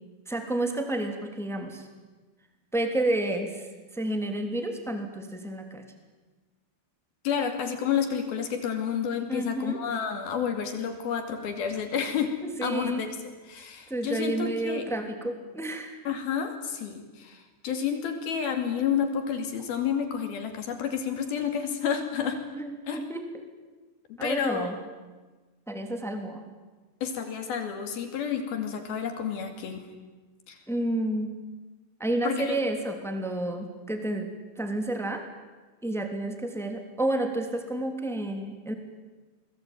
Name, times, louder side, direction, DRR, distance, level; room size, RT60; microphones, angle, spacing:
voice 1, 0.3-1.9 2.7-3.7 3.9-5.8 9.3-9.8 12.6-13.0 13.9-16.0 22.5-23.2 24.2-24.8 25.7-26.4 30.7-31.3 32.0-35.2 35.8-38.7, right 1 dB, ahead, 5 dB, 2.3 m, -30 dB
voice 2, 7.2-12.3 12.6-13.1 13.5-14.9 16.1-22.4 22.9-23.0 24.1-24.7 27.0-29.9 30.5-30.6 32.2-32.6, left 7 dB, 65° left, 6 dB, 4.2 m, -30 dB
29.0 x 21.0 x 9.2 m, 1.3 s
omnidirectional pair, 4.7 m